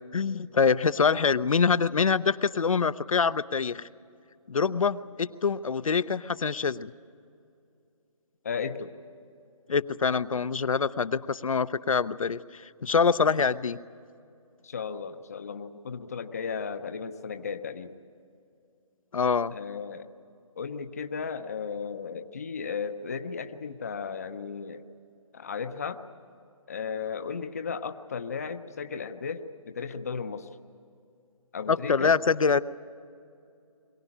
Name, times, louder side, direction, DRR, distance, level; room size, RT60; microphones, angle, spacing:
voice 1, 0.1-3.9 4.5-6.9 9.7-13.8 19.1-19.5 31.7-32.6, left 5 dB, 70° left, 14 dB, 0.6 m, -25 dB
voice 2, 8.4-8.9 14.6-17.9 19.5-20.1 20.6-24.8 25.3-26.0 26.7-30.5 31.5-32.2, left 6 dB, 25° left, 9 dB, 0.6 m, -35 dB
22.5 x 17.0 x 9.9 m, 2.5 s
hypercardioid pair, 170°, 18 cm